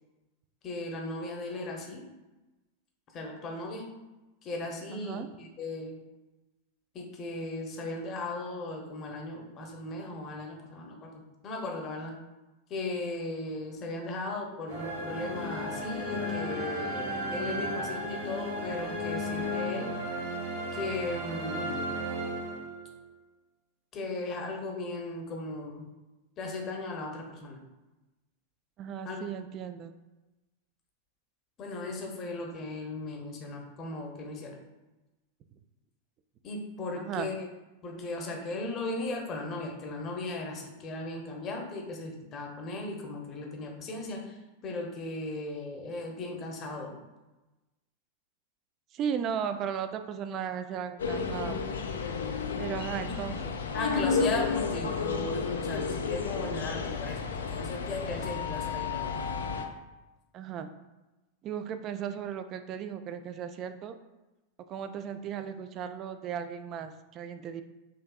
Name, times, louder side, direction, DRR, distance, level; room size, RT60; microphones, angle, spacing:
voice 1, 0.6-2.1 3.1-3.9 4.4-6.0 6.9-12.2 12.7-19.9 20.7-21.9 23.9-25.9 26.4-27.6 29.0-29.2 31.6-34.6 36.4-37.5 37.8-47.0 53.0-53.1 53.7-59.2, left 2 dB, 30° left, 1 dB, 0.8 m, -37 dB
voice 2, 4.9-5.3 28.8-29.9 37.0-37.3 48.9-51.6 52.6-53.6 60.3-60.7 61.4-64.0 64.7-67.6, right 8 dB, 35° right, 9 dB, 0.3 m, -36 dB
sound 1, 14.7-23.0, equal, 60° right, 1.4 m, -34 dB
sound 2, 51.0-59.7, left 5 dB, 65° left, 0.4 m, -32 dB
5.7 x 2.6 x 2.3 m, 1.1 s
figure-of-eight pair, 90°, 0 cm